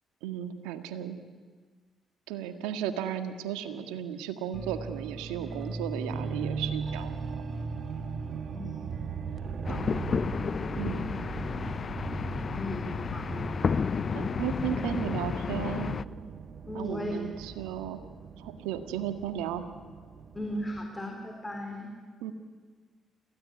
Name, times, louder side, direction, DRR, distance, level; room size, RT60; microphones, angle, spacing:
voice 1, 0.2-1.2 2.3-7.4 9.7-9.8 10.7-11.0 14.1-16.0 16.7-18.0 18.4-19.7 22.2-22.3, right 9 dB, 85° right, 8 dB, 1.7 m, -35 dB
sound 1, 4.5-20.9, right 5 dB, 55° right, 1.7 m, -39 dB
voice 2, 8.5-9.2 9.7-9.9 12.5-12.9 13.1-13.2 16.7-17.2 20.3-21.9, left 1 dB, 20° left, 2 dB, 4.5 m, -36 dB
sound 2, 9.6-16.0, left 6 dB, 45° left, 0.6 m, -31 dB
27.5 x 16.0 x 9.6 m, 1.5 s
hypercardioid pair, 55°, 0 cm